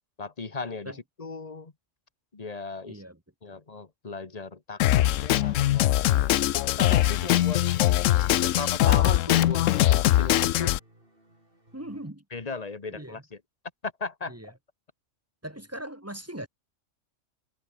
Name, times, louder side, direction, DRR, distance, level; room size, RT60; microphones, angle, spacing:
voice 1, 0.2-1.7 2.3-3.0 3.4-7.6 8.4-10.7 12.3-13.4 13.8-14.4, left 4 dB, 30° left, 1.6 m, -37 dB
voice 2, 2.8-3.2 3.5-3.6 11.7-12.2 12.9-13.2 14.3-14.5 15.4-16.5, right 1 dB, 10° right, 1.5 m, -40 dB
Drum kit, 4.8-10.8, left 14 dB, 90° left, 1.0 m, -22 dB
sound 1, 6.5-12.1, right 1 dB, 45° right, 7.0 m, -59 dB
omnidirectional pair, 1.3 m